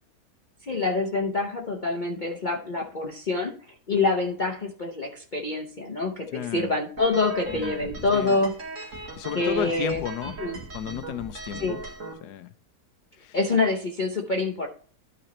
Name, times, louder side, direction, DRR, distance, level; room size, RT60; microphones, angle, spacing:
voice 1, 0.6-3.5 3.9-8.5 9.3-10.0 10.4-10.6 11.6-11.8 13.3-14.7, left 3 dB, 40° left, 1 dB, 0.8 m, -26 dB
voice 2, 6.3-6.7 7.5-8.4 9.0-10.4 10.7-11.8 12.2-12.5 13.2-13.4, left 11 dB, 75° left, 12 dB, 1.2 m, -34 dB
sound 1, 7.0-12.1, right 2 dB, 50° right, 1.8 m, -38 dB
12.0 x 4.1 x 4.3 m, 0.43 s
omnidirectional pair, 1.8 m